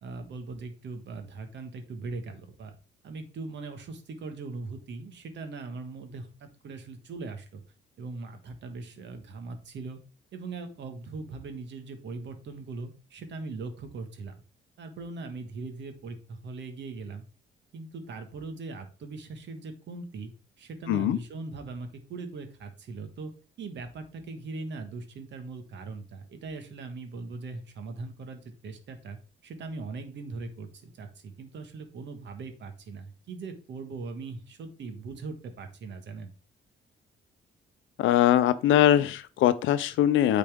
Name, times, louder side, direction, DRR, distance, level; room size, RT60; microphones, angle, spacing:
voice 1, 0.0-2.7 3.0-7.6 8.0-10.0 10.3-14.3 14.8-17.2 17.7-20.3 20.6-23.3 23.6-36.3, right 3 dB, 65° right, 1.4 m, -40 dB
voice 2, 20.9-21.2 38.0-40.4, left 12 dB, 80° left, 0.6 m, -22 dB
8.5 x 4.2 x 3.5 m
cardioid pair, 90°, 20 cm